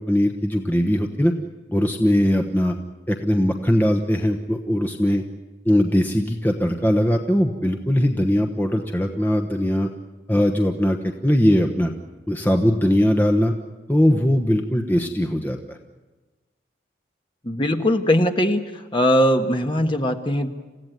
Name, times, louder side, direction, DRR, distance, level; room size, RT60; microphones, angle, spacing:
voice 1, 0.0-1.3 1.7-2.8 3.1-5.2 5.6-9.9 10.3-11.9 12.3-13.5 13.9-15.6, equal, 10° left, 4 dB, 1.1 m, -20 dB
voice 2, 17.4-20.5, equal, 25° left, 5 dB, 1.4 m, -20 dB
28.0 x 16.0 x 9.2 m, 1.2 s
head